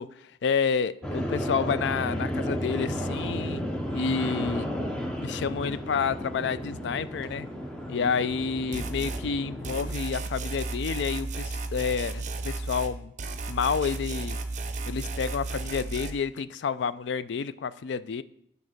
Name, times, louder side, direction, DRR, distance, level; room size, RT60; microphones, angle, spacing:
voice 1, 0.0-3.6 3.9-4.7 5.2-7.5 7.9-13.1 13.5-14.4 14.9-18.2, left 6 dB, 70° left, 0.3 m, -29 dB
sound 1, 1.0-9.9, equal, 5° left, 0.7 m, -33 dB
sound 2, 8.7-9.2 9.6-12.9 13.2-16.1, right 3 dB, 40° right, 0.6 m, -33 dB
8.7 x 4.1 x 6.4 m
head